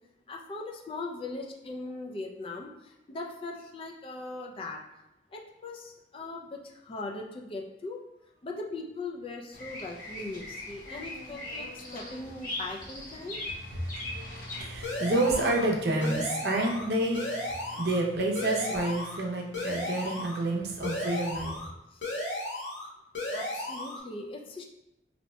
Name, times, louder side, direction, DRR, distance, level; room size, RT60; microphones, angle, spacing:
voice 1, 0.3-4.8 5.3-8.0 8.4-13.4 21.9-22.0 23.3-24.6, left 2 dB, 30° left, 0 dB, 0.3 m, -40 dB
Bird vocalization bird call bird song, 9.5-14.6, left 1 dB, 50° left, 0.9 m, -40 dB
voice 2, 13.6-21.6, right 1 dB, 60° right, -1 dB, 0.6 m, -29 dB
sound 1, 14.8-15.7 16.0-16.9 17.1-18.0 18.3-19.2 19.5-20.4 20.8-21.7 22.0-22.9 23.1-24.0, left 1 dB, 85° left, 0.7 m, -34 dB
2.8 x 2.1 x 4.1 m, 0.91 s
head